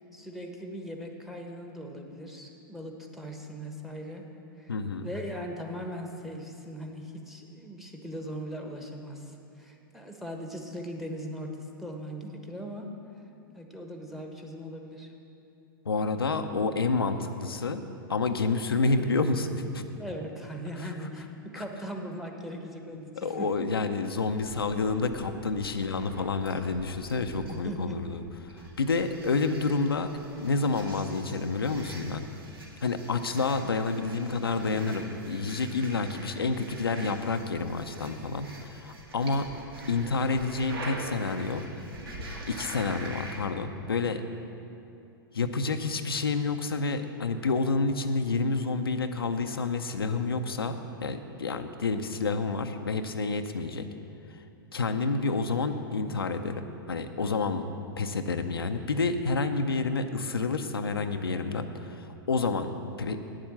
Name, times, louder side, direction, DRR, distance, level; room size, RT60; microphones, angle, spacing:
voice 1, 0.1-4.3 4.6-4.7 5.0-12.9 13.5-15.1 19.9-23.5 27.5-28.0, equal, ahead, 3 dB, 1.3 m, -39 dB
voice 2, 4.7-5.1 15.9-17.8 18.1-19.8 21.6-21.7 23.2-28.5 28.8-30.1 30.3-32.2 32.8-39.5 39.9-41.6 42.5-44.2 45.3-53.9 54.7-57.7 58.0-62.7 63.0-63.2, left 3 dB, 90° left, 6 dB, 0.6 m, -29 dB
sound 1, 24.3-43.4, right 1 dB, 80° right, 1.9 m, -44 dB
9.5 x 7.4 x 7.5 m, 2.7 s
hypercardioid pair, 110°, 12 cm